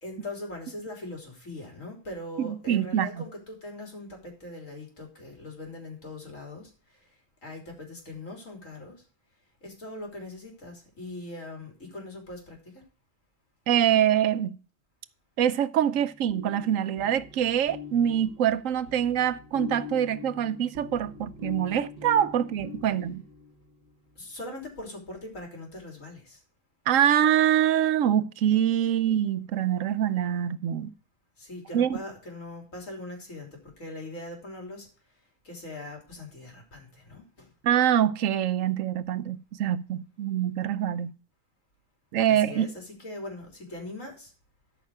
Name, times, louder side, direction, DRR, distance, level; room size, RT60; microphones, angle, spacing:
voice 1, 0.0-6.7 7.4-9.0 9.6-12.8 24.2-26.4 31.4-33.5 33.8-34.9 35.5-37.5 42.3-44.3, left 2 dB, 90° left, 3.8 m, -41 dB
voice 2, 2.4-3.2 13.7-14.6 15.4-23.2 26.9-30.9 31.7-32.0 37.6-41.1 42.1-42.7, right 10 dB, 85° right, 1.1 m, -25 dB
sound 1, 15.9-23.9, left 6 dB, 50° right, 1.4 m, -43 dB
13.0 x 5.8 x 4.7 m
omnidirectional pair, 1.3 m